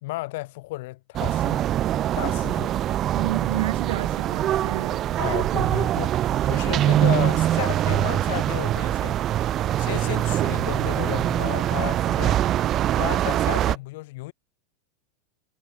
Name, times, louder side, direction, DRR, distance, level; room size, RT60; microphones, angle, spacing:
voice 1, 0.0-1.6 2.1-2.8 5.2-12.4 12.9-14.3, left 20 dB, 65° left, 1.5 m, -33 dB
sound 1, 1.1-13.8, right 12 dB, 35° right, 0.5 m, -23 dB
voice 2, 3.1-5.4, right 13 dB, 75° right, 1.2 m, -31 dB
supercardioid pair, 125°, 0 cm